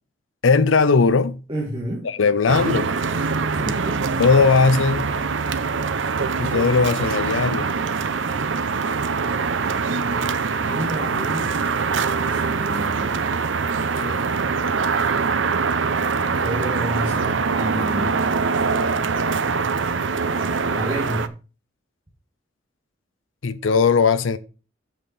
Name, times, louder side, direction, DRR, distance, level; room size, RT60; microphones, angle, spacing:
voice 1, 0.4-1.4 2.0-2.9 4.2-5.1 6.4-7.7 14.0-14.3 23.4-24.4, left 4 dB, 90° left, 0.6 m, -18 dB
voice 2, 1.5-2.1 3.5-4.0 10.6-11.6 12.2-13.2 16.2-18.2 20.7-21.3, equal, 25° right, 2.0 m, -30 dB
sound 1, 2.5-21.3, right 5 dB, 75° right, 0.7 m, -23 dB
8.8 x 7.1 x 4.2 m
head